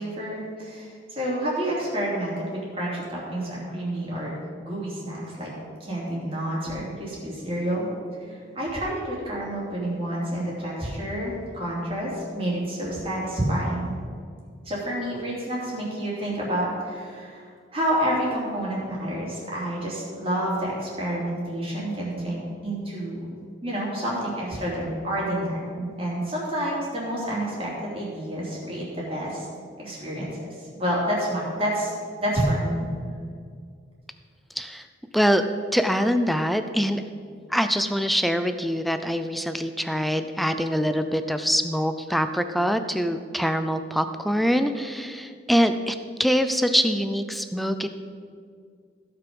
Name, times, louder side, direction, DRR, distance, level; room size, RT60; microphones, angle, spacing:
voice 1, 0.0-5.5 5.8-7.9 8.2-13.9 14.6-23.3 23.6-29.5 29.8-30.3 30.8-31.9 32.2-32.9, right 1 dB, 30° right, -6 dB, 3.0 m, -29 dB
voice 2, 35.7-37.0 37.5-47.9, equal, ahead, 9 dB, 0.5 m, -24 dB
15.5 x 5.8 x 5.4 m, 2.1 s
head